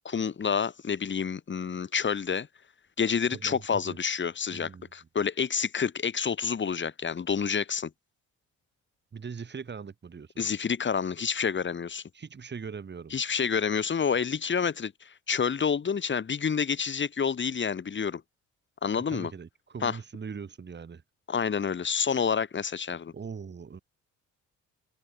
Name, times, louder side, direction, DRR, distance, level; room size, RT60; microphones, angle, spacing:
voice 1, 0.0-2.5 3.0-7.9 10.4-12.0 13.1-18.2 18.8-19.3 19.8-20.0 21.3-23.1, left 6 dB, 40° left, 2.4 m, -28 dB
voice 2, 3.3-4.0 4.5-4.9 9.1-10.3 12.1-13.1 19.1-21.0 23.1-23.8, right 6 dB, 35° right, 3.1 m, -41 dB
open air
cardioid pair, 90°, 30 cm